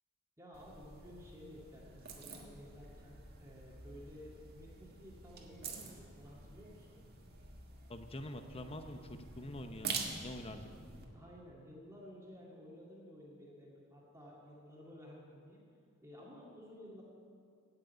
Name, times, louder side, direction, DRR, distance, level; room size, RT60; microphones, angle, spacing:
voice 1, 0.4-7.0 11.1-15.6 16.0-17.0, equal, 15° right, -4 dB, 2.1 m, -54 dB
sound 1, 0.5-11.0, right 4 dB, 45° right, 1.7 m, -47 dB
voice 2, 7.9-10.7, left 1 dB, 25° left, 7 dB, 0.8 m, -46 dB
17.0 x 6.7 x 9.3 m, 2.3 s
head